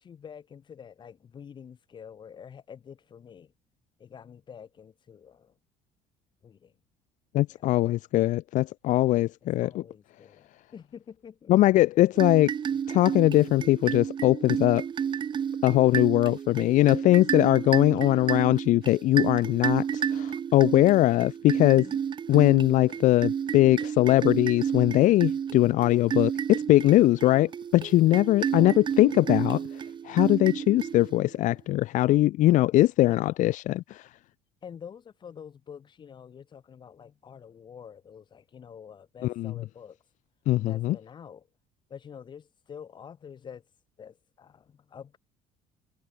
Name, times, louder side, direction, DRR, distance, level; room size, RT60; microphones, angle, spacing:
voice 1, 0.0-3.5 4.0-5.6 6.4-6.7 7.5-7.6 9.6-11.5 18.0-18.5 21.5-22.0 28.5-28.8 33.1-33.3 34.6-40.0 40.6-41.5 41.9-43.6 44.0-45.2, left 7 dB, 35° left, 7.7 m, -47 dB
voice 2, 7.3-9.8 11.5-12.5 12.9-14.8 15.6-21.8 22.3-29.6 30.0-34.0 39.2-39.5 40.5-40.9, left 16 dB, 65° left, 1.5 m, -21 dB
sound 1, 12.1-31.4, right 8 dB, 35° right, 2.6 m, -31 dB
cardioid pair, 150°, 14 cm